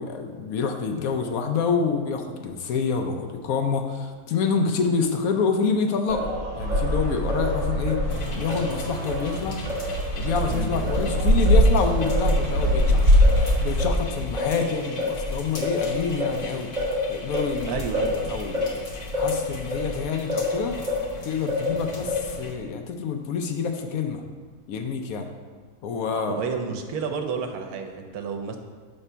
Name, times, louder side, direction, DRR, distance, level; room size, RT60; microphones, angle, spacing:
voice 1, 0.0-6.3 6.6-8.0 8.3-9.6 10.2-16.7 17.1-17.8 18.3-18.8 19.1-20.8 21.2-24.2 24.7-25.3 25.8-26.4, left 5 dB, 75° left, 5 dB, 1.0 m, -27 dB
Singing, 6.1-10.5 10.9-21.1 21.5-22.5, left 2 dB, 35° right, 1.0 m, -29 dB
sound 1, 6.6-13.9, equal, 60° right, 1.2 m, -22 dB
sound 2, 8.1-22.5, left 3 dB, 45° left, 1.1 m, -39 dB
voice 2, 17.6-18.2 26.1-28.6, right 6 dB, 80° right, 4 dB, 1.1 m, -30 dB
5.9 x 3.3 x 5.5 m, 1.5 s
omnidirectional pair, 1.6 m